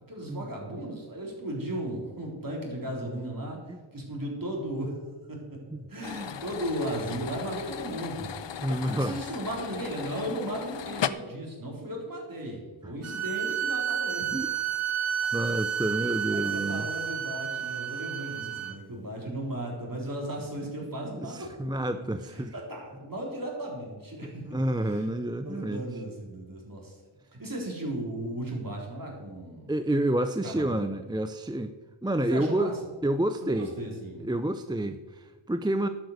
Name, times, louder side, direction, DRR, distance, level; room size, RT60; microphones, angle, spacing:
voice 1, 0.1-3.6 3.9-5.0 5.3-5.6 5.9-8.4 8.8-14.3 16.3-21.6 22.2-24.5 24.9-25.0 25.4-27.0 27.3-29.7 30.4-30.8 32.3-32.8 33.4-34.3, right 1 dB, 40° right, -2 dB, 3.7 m, -36 dB
sound 1, 6.0-11.1, left 9 dB, 60° left, 0.6 m, -36 dB
voice 2, 8.6-9.2 12.8-12.9 14.3-14.5 15.3-16.9 21.2-22.5 24.2-26.0 29.7-31.8 32.0-32.7 33.0-33.7 34.2-35.9, right 1 dB, 10° right, 9 dB, 0.4 m, -29 dB
sound 2, 13.0-18.7, right 9 dB, 90° right, 1.2 m, -31 dB
12.0 x 7.9 x 6.5 m, 1.3 s
wide cardioid pair, 95°, 49 cm